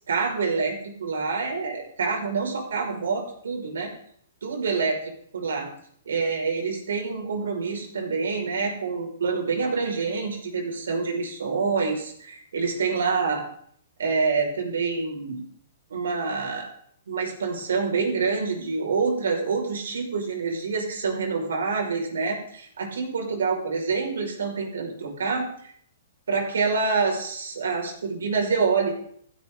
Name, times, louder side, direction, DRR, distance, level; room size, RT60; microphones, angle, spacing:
voice 1, 0.1-3.9 4.4-5.7 6.1-13.4 14.0-15.4 15.9-16.7 17.1-25.7 26.3-28.9, right 4 dB, 85° right, 1 dB, 6.0 m, -27 dB
17.0 x 15.5 x 4.0 m, 0.62 s
hypercardioid pair, 150°, 0 cm